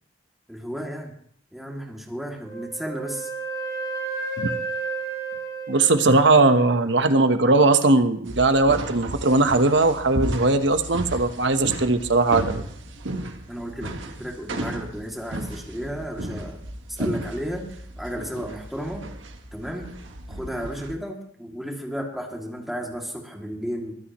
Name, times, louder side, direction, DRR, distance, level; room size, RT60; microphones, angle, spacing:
voice 1, 0.5-1.1 1.5-3.3 13.5-16.6 16.9-17.7 18.0-19.1 19.5-19.9 20.3-24.0, equal, ahead, -1 dB, 2.6 m, -33 dB
Wind instrument woodwind instrument, 2.4-6.6, right 3 dB, 25° left, 4.9 m, -32 dB
voice 2, 5.7-12.7, right 3 dB, 70° right, 9 dB, 1.1 m, -19 dB
sound 1, 8.3-20.9, right 1 dB, 90° right, 1.7 m, -34 dB
22.5 x 13.0 x 3.1 m, 0.65 s
head